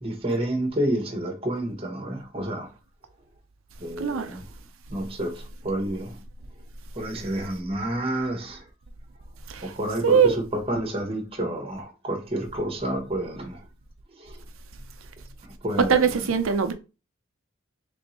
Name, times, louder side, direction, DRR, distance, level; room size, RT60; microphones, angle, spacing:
voice 1, 0.0-2.7 3.8-4.4 4.9-6.2 6.9-8.6 9.6-10.3 10.7-13.6 14.2-14.4 15.6-16.1, right 1 dB, 30° right, 1.0 m, -29 dB
voice 2, 4.0-4.3 9.5-9.7 10.0-10.4 15.8-16.7, right 6 dB, 90° right, 0.6 m, -21 dB
3.4 x 2.6 x 4.2 m
head